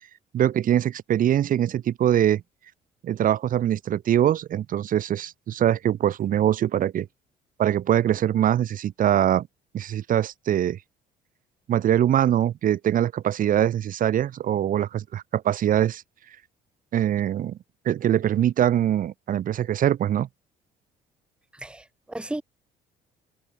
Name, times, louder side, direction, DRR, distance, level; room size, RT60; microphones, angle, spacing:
voice 1, 0.3-2.4 3.0-7.1 7.6-9.5 9.7-10.8 11.7-16.0 16.9-17.6 17.8-20.3, right 11 dB, 55° right, 1.2 m, -23 dB
voice 2, 21.6-22.4, right 1 dB, 5° right, 1.3 m, -34 dB
cardioid pair, 110°, 17 cm